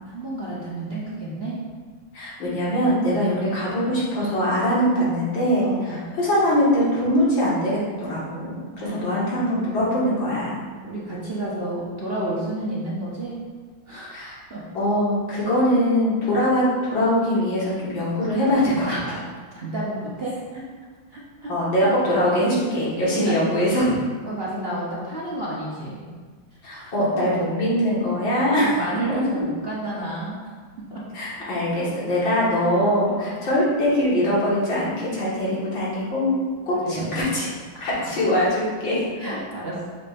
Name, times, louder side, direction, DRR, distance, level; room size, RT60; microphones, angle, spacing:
voice 1, 0.1-1.6 3.1-3.4 5.6-6.0 8.8-9.8 10.8-13.4 13.9-14.6 18.8-19.2 19.5-20.6 21.1-21.5 21.8-21.9 23.1-23.4 23.9-24.0 24.3-26.1 26.5-26.9 28.4-30.4 30.9-31.0 31.4-31.5 32.8-33.3 36.7-37.4 37.7-38.2 39.2-39.9, right 1 dB, 40° right, -6 dB, 1.0 m, -32 dB
voice 2, 2.1-10.6 14.1-14.4 14.7-19.0 21.5-23.9 26.6-28.8 29.1-29.2 31.1-36.4 36.7-37.5 37.8-39.0, equal, 85° left, -7 dB, 2.6 m, -22 dB
6.7 x 3.2 x 5.2 m, 1.5 s
omnidirectional pair, 2.0 m